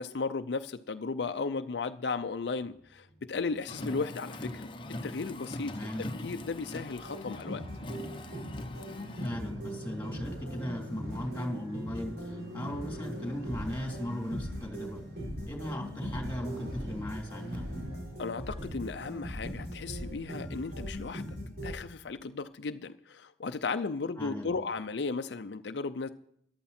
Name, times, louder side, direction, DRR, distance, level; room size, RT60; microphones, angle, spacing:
voice 1, 0.0-4.7 5.0-5.7 6.2-7.6 18.2-21.3 21.6-26.1, left 4 dB, 70° left, 8 dB, 0.5 m, -35 dB
Motorcycle, 2.6-20.7, equal, 80° right, 3.8 m, -47 dB
Car, 3.7-9.3, left 1 dB, 30° left, 0.9 m, -41 dB
voice 2, 5.6-6.1 9.2-15.0 15.4-17.7 24.2-24.5, equal, 10° left, 1 dB, 3.4 m, -37 dB
sound 1, 7.0-21.7, equal, 60° right, 5.3 m, -40 dB
14.0 x 11.5 x 4.3 m, 0.71 s
head